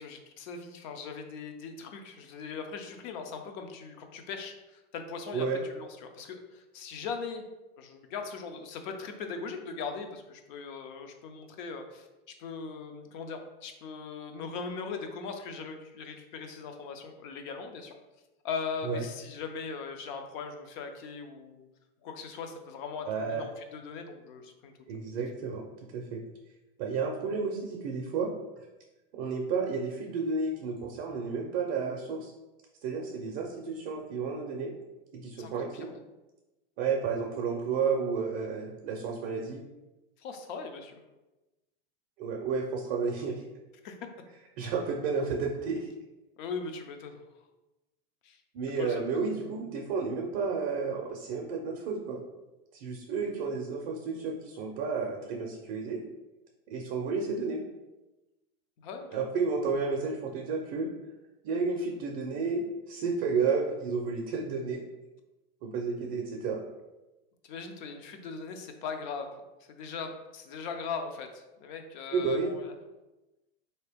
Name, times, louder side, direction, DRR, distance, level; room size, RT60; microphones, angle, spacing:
voice 1, 0.0-7.4 7.8-12.1 12.4-18.0 18.4-21.7 22.0-24.7 35.4-36.0 40.2-41.0 43.8-44.0 46.4-47.2 48.2-48.4 48.8-49.0 58.8-59.3 67.4-69.4 69.7-72.7, left 5 dB, 50° left, 6 dB, 0.6 m, -40 dB
voice 2, 23.1-23.5 24.9-25.6 25.9-26.2 26.8-28.3 29.1-32.3 32.8-34.7 35.1-35.9 36.8-39.6 42.2-43.4 44.6-45.9 48.5-52.2 52.7-56.0 56.7-57.6 59.1-60.9 61.4-62.6 62.9-64.8 65.6-66.6 72.1-72.5, right 5 dB, 40° right, 0 dB, 0.5 m, -31 dB
3.9 x 2.8 x 3.4 m, 1.0 s
supercardioid pair, 155°, 29 cm